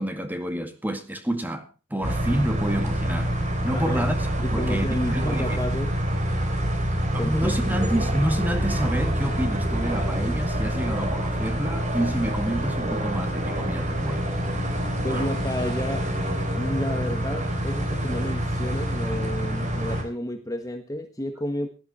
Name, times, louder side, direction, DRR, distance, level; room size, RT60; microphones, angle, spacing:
voice 1, 0.0-3.4 3.6-5.6 7.1-14.3 15.1-15.3, right 1 dB, 10° right, 2.0 m, -29 dB
sound 1, 2.0-20.0, right 1 dB, 35° right, 3.8 m, -26 dB
voice 2, 3.7-4.1 4.4-6.0 7.2-7.5 7.8-7.9 15.0-16.1 16.6-21.7, left 1 dB, 15° left, 1.4 m, -31 dB
17.5 x 12.0 x 4.2 m
head